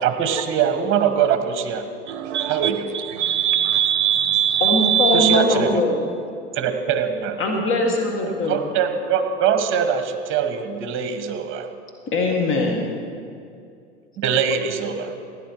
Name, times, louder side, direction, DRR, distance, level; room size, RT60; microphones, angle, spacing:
voice 1, 0.0-1.9 2.4-2.9 5.1-5.8 6.5-7.4 8.2-11.7 14.2-15.1, right 7 dB, 35° right, 1.5 m, -23 dB
voice 2, 2.1-5.4, right 9 dB, 65° right, 0.7 m, -21 dB
voice 3, 4.6-6.0 7.4-8.6 12.1-12.9, left 2 dB, 35° left, 1.9 m, -21 dB
16.0 x 10.0 x 4.7 m
hypercardioid pair, 95°, 36 cm